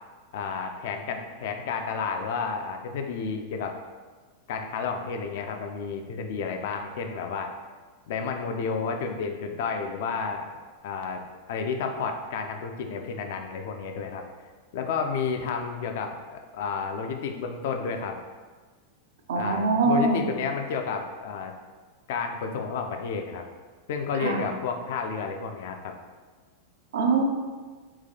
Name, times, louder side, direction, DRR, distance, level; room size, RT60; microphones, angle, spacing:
voice 1, 0.3-3.8 4.5-7.5 8.1-10.5 10.8-11.2 11.5-14.2 14.7-18.2 19.4-21.5 22.1-23.4 23.9-25.9, left 5 dB, 55° left, 5 dB, 0.3 m, -31 dB
voice 2, 19.3-20.2 24.2-24.4 26.9-27.2, right 3 dB, 60° right, 3 dB, 0.4 m, -23 dB
3.9 x 2.3 x 2.7 m, 1.4 s
figure-of-eight pair, 90°, 0 cm